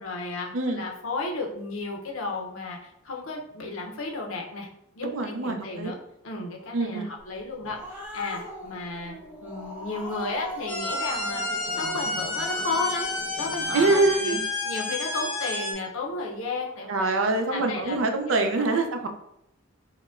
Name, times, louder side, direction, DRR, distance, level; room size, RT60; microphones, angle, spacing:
voice 1, 0.0-4.7 5.0-6.0 6.2-9.2 9.4-11.4 11.7-13.1 13.3-17.1 17.5-18.6, left 3 dB, 85° left, 1 dB, 0.7 m, -33 dB
voice 2, 5.0-5.9 6.7-7.1 13.7-14.4 16.9-19.1, right 3 dB, 75° right, 5 dB, 0.4 m, -24 dB
Growling, 7.4-14.1, equal, 10° right, 0.7 m, -41 dB
sound 1, 10.7-15.7, left 2 dB, 65° left, 1.5 m, -30 dB
4.7 x 2.1 x 2.4 m, 0.79 s
head